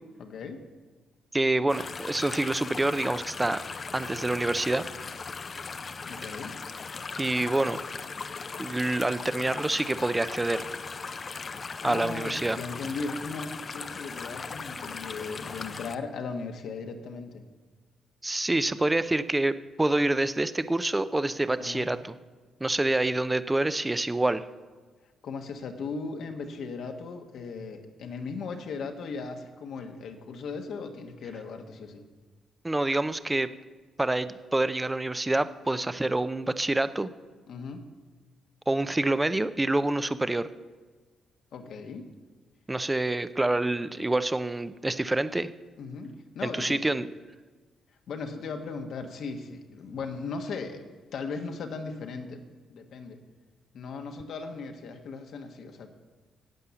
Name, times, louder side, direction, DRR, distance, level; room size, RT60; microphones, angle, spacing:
voice 1, 0.2-0.7 6.1-6.5 11.8-17.4 21.5-21.9 25.2-32.1 37.5-37.9 41.5-42.1 45.8-46.9 48.1-50.8 51.1-52.4 52.7-53.2 53.7-55.9, left 4 dB, 70° left, 4 dB, 1.3 m, -37 dB
voice 2, 1.3-3.6 3.9-4.8 7.2-7.8 8.6-10.7 11.8-12.6 18.2-22.1 22.6-24.4 32.6-33.5 34.0-37.1 38.7-40.5 42.7-45.5 46.4-47.1, right 2 dB, 15° right, 13 dB, 0.6 m, -27 dB
sound 1, 1.7-15.9, left 4 dB, 40° left, 0.6 m, -38 dB
10.5 x 8.4 x 7.0 m, 1.4 s
cardioid pair, 75°, 0 cm